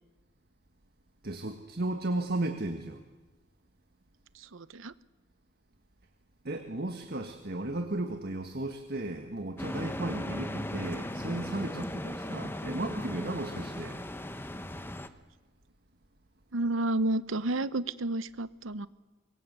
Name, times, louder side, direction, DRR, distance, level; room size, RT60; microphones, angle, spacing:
voice 1, 1.2-3.0 6.5-14.0, right 2 dB, 50° right, 5 dB, 1.6 m, -35 dB
voice 2, 4.3-4.9 16.5-18.9, right 2 dB, 85° right, 16 dB, 0.9 m, -31 dB
sound 1, 9.6-15.1, left 1 dB, 10° left, 1.0 m, -37 dB
25.5 x 22.5 x 8.2 m, 1.2 s
head